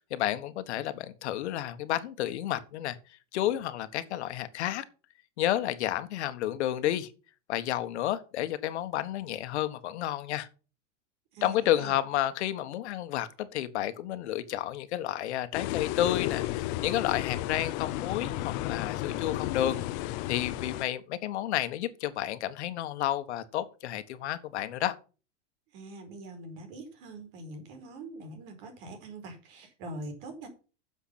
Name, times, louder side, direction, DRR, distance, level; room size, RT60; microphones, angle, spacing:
voice 1, 0.1-3.0 3.3-4.8 5.4-7.1 7.5-10.5 11.4-19.8 20.3-24.9, left 12 dB, 65° left, 1.5 m, -31 dB
voice 2, 11.3-11.9 25.7-30.5, right 2 dB, 50° right, 4.8 m, -43 dB
sound 1, 15.5-20.8, left 15 dB, 35° left, 0.7 m, -33 dB
10.5 x 7.1 x 5.9 m
supercardioid pair, 155°, 36 cm